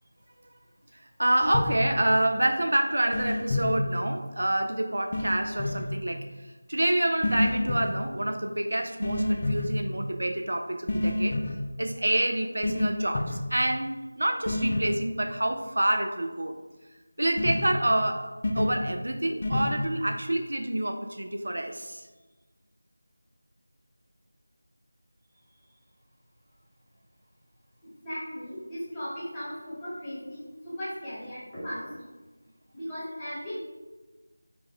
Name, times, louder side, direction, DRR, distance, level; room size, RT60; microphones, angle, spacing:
voice 1, 1.2-6.2 6.7-11.4 11.8-16.5 17.2-22.1, right 1 dB, 65° right, 5 dB, 0.3 m, -27 dB
sound 1, 1.4-1.8 3.1-3.7 5.1-5.9 7.2-7.9 9.0-9.7 10.9-11.6 12.6-12.9 13.1-13.4 14.5-14.9 17.4-17.7 18.4-18.8 19.4-19.7, left 1 dB, 35° left, 0.3 m, -27 dB
voice 2, 28.0-31.9 32.7-33.6, equal, 10° left, -12 dB, 1.1 m, -37 dB
4.6 x 2.1 x 3.6 m, 1.2 s
figure-of-eight pair, 170°, 0 cm